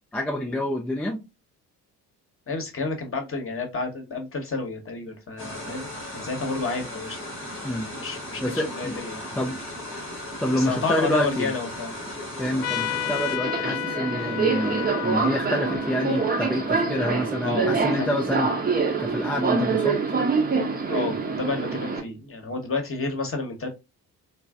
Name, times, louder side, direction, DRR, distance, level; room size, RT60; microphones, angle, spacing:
voice 1, 0.1-1.2 7.6-7.9 8.4-9.0 9.3-9.6 10.4-11.5 12.4-18.5 19.0-20.0, equal, 5° left, 0.3 m, -27 dB
voice 2, 2.5-7.2 7.9-9.2 10.5-11.9 17.4-18.1 20.9-23.7, left 4 dB, 30° left, 1.0 m, -30 dB
sound 1, 5.4-13.4, left 1 dB, 90° left, 1.0 m, -37 dB
Subway metro underground, 12.4-22.0, right 4 dB, 20° right, 0.7 m, -26 dB
Trumpet, 12.6-17.7, left 12 dB, 55° left, 0.6 m, -33 dB
3.1 x 2.1 x 2.3 m
figure-of-eight pair, 45°, 47 cm